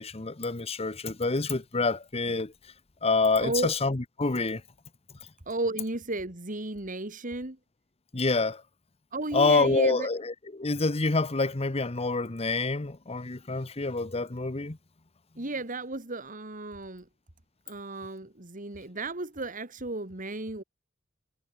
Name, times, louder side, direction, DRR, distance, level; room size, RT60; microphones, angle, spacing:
voice 1, 0.0-2.5 3.0-4.6 8.1-8.6 9.3-14.8, left 3 dB, 30° left, 1.1 m, -27 dB
voice 2, 3.4-3.7 5.5-7.6 9.1-10.1 15.4-17.1 17.7-20.6, right 2 dB, 40° right, 2.6 m, -34 dB
head